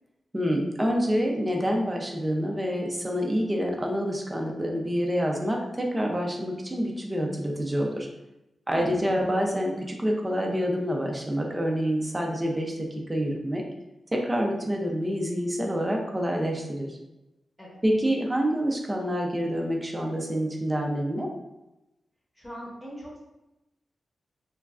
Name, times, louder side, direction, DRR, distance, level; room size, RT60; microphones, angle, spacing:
voice 1, 0.3-8.1 8.7-13.6 14.1-17.0 17.8-21.3, equal, 15° right, 0 dB, 0.4 m, -27 dB
voice 2, 8.7-9.2 17.6-17.8 22.3-23.2, equal, 10° left, -5 dB, 0.9 m, -40 dB
3.0 x 2.3 x 2.4 m, 0.95 s
wide cardioid pair, 135°, 0 cm